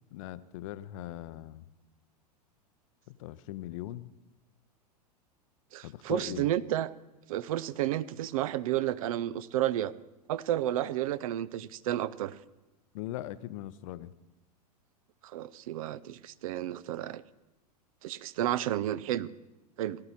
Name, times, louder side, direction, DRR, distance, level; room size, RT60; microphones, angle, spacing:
voice 1, 0.1-1.7 3.1-4.1 5.8-6.5 12.9-14.1, left 14 dB, 55° left, 16 dB, 0.6 m, -40 dB
voice 2, 5.7-6.9 7.3-9.9 10.3-12.4 15.3-17.2 18.0-19.3 19.8-20.0, right 13 dB, 60° right, 18 dB, 0.5 m, -31 dB
17.0 x 11.5 x 4.2 m, 1.0 s
figure-of-eight pair, 95°, 21 cm